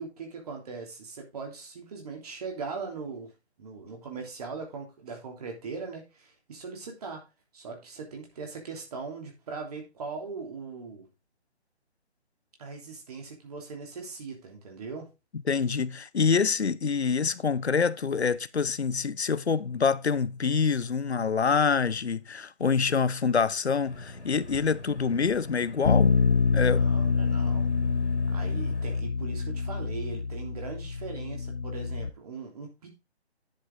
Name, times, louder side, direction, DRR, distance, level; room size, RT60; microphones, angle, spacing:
voice 1, 0.0-3.3 3.6-7.2 7.5-11.1 12.6-15.1 26.5-27.7 28.3-32.9, right 4 dB, 35° right, 3.2 m, -40 dB
voice 2, 15.5-26.1 26.5-26.8, left 5 dB, 70° left, 0.8 m, -26 dB
sound 1, 23.8-29.0, left 1 dB, 90° left, 2.8 m, -42 dB
Bass guitar, 25.8-32.1, left 4 dB, 40° left, 0.7 m, -26 dB
10.0 x 6.1 x 3.9 m
figure-of-eight pair, 145°, 33 cm